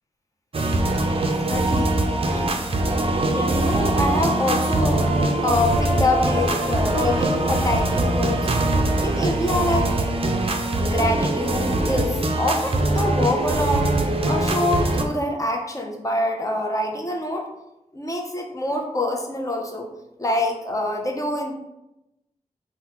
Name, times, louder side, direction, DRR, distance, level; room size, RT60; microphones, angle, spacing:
sound 1, 0.5-15.0, right 2 dB, 45° right, 0.4 m, -22 dB
voice 1, 1.3-2.0 2.3-2.6 3.3-5.1 5.4-8.5 9.0-9.9 10.8-14.0 14.3-17.5 17.9-19.9 20.2-21.5, left 1 dB, 25° left, 1 dB, 0.6 m, -25 dB
3.6 x 2.1 x 2.9 m, 0.90 s
wide cardioid pair, 65°, 14 cm